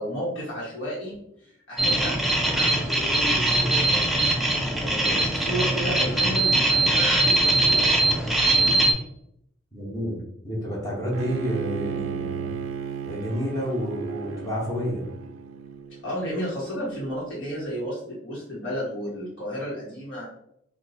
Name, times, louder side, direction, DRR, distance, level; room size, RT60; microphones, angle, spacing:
voice 1, 0.0-4.2 4.8-8.9 16.0-20.2, equal, 70° left, -8 dB, 1.1 m, -33 dB
sound 1, 1.8-8.9, right 1 dB, ahead, 0.4 m, -21 dB
voice 2, 9.7-10.2 10.4-12.5 13.0-15.0, equal, 15° left, -4 dB, 0.9 m, -29 dB
Bowed string instrument, 11.1-16.2, right 7 dB, 85° right, 0.3 m, -34 dB
2.8 x 2.3 x 4.0 m, 0.75 s
head